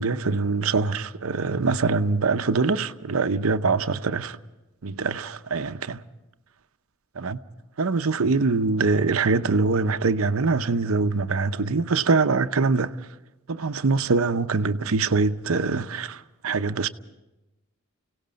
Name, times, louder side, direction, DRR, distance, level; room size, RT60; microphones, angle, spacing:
voice 1, 0.0-4.4 4.8-6.0 7.2-7.4 7.8-12.9 13.5-16.9, right 4 dB, 80° right, 0.7 m, -23 dB
30.0 x 17.5 x 5.2 m
head